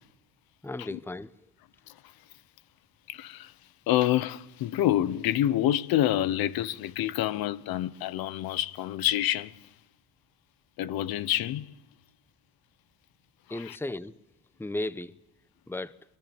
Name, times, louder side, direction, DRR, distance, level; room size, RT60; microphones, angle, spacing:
voice 1, 0.6-1.3 13.5-14.2 14.6-15.1 15.7-16.0, left 2 dB, 5° left, 0.9 m, -35 dB
voice 2, 3.1-3.5 3.9-9.6 10.8-11.7 13.7-13.8, left 13 dB, 75° left, 1.0 m, -27 dB
23.5 x 23.5 x 7.2 m
cardioid pair, 80°, 36 cm